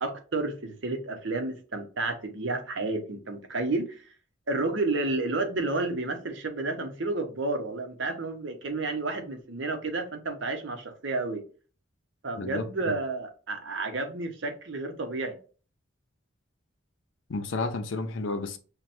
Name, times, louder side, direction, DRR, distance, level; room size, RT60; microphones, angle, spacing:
voice 1, 0.0-4.0 4.5-11.4 12.2-15.4, right 2 dB, 70° right, 0.8 m, -31 dB
voice 2, 12.4-12.9 17.3-18.6, left 3 dB, 80° left, 0.5 m, -32 dB
5.7 x 2.2 x 2.5 m
head